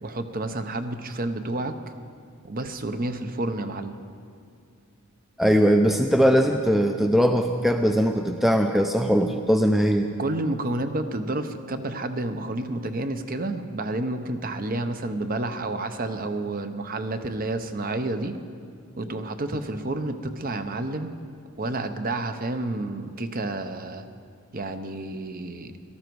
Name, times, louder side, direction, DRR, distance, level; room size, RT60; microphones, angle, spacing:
voice 1, 0.0-1.7 2.4-4.0 10.2-18.3 19.0-21.1 21.6-24.0 24.5-25.7, right 2 dB, 40° right, 9 dB, 0.7 m, -30 dB
voice 2, 5.4-10.1, equal, ahead, 5 dB, 0.4 m, -20 dB
18.0 x 13.0 x 4.7 m, 2.2 s
head